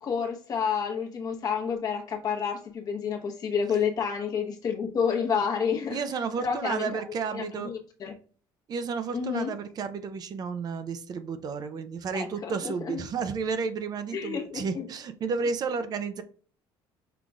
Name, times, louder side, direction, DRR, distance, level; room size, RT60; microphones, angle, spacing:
voice 1, 0.0-6.0 6.4-7.0 7.3-8.1 9.1-9.5 12.1-13.0 14.1-14.6, left 6 dB, 45° left, 2 dB, 1.0 m, -29 dB
voice 2, 5.9-7.7 8.7-16.2, right 5 dB, 45° right, 10 dB, 0.5 m, -32 dB
5.7 x 3.7 x 2.3 m, 0.42 s
cardioid pair, 120°, 9 cm